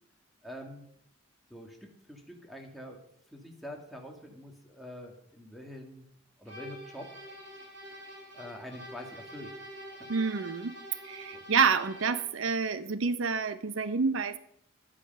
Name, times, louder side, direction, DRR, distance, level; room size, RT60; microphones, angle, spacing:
voice 1, 0.4-0.9 1.5-3.0 3.3-6.0 6.4-7.1 8.3-9.5 10.0-10.1 11.3-11.4, left 1 dB, ahead, 0 dB, 2.0 m, -45 dB
sound 1, 6.5-12.4, equal, 60° right, 5.5 m, -46 dB
voice 2, 10.1-10.7 11.0-14.4, right 5 dB, 85° right, 13 dB, 0.7 m, -28 dB
11.5 x 10.0 x 5.4 m, 0.70 s
head